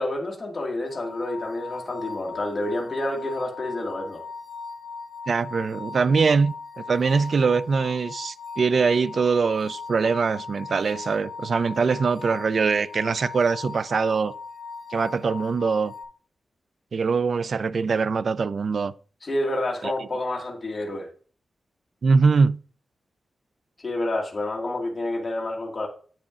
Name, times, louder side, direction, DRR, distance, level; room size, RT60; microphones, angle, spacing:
voice 1, 0.0-4.2 19.2-21.1 23.8-25.9, left 1 dB, 35° left, 1.8 m, -29 dB
sound 1, 0.9-16.0, left 4 dB, 20° left, 4.1 m, -39 dB
voice 2, 5.3-14.3 14.9-15.9 16.9-18.9 19.8-19.9 22.0-22.6, right 5 dB, 60° right, 0.4 m, -23 dB
9.0 x 8.8 x 2.4 m
wide cardioid pair, 90°, 0 cm